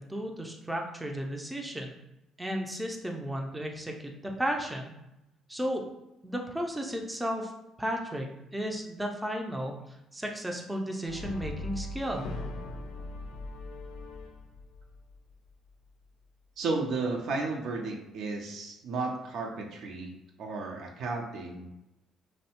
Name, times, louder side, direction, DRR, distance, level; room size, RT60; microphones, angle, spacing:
voice 1, 0.0-1.9 2.4-4.9 5.5-5.8 6.2-7.5 7.8-12.2, equal, 10° right, 1 dB, 0.4 m, -34 dB
Brass instrument, 11.1-15.3, left 2 dB, 75° left, 0.4 m, -40 dB
voice 2, 16.6-21.7, right 3 dB, 70° right, 1 dB, 0.5 m, -33 dB
2.6 x 2.1 x 2.8 m, 0.91 s
supercardioid pair, 60°, 0 cm